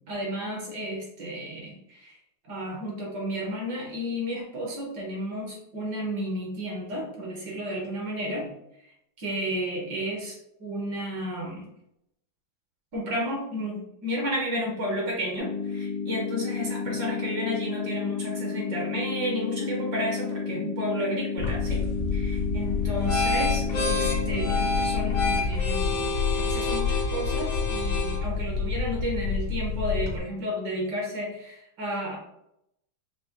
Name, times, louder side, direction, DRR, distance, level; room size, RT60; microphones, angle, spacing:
voice 1, 0.1-2.2 2.5-8.5 9.2-11.6 12.9-21.8 22.1-26.1 26.4-32.2, equal, 60° right, -2 dB, 1.4 m, -32 dB
sound 1, 15.4-25.4, left 5 dB, 65° left, 0.8 m, -32 dB
sound 2, 21.4-30.2, left 4 dB, 90° left, 1.9 m, -27 dB
5.4 x 2.1 x 2.9 m, 0.78 s
omnidirectional pair, 2.3 m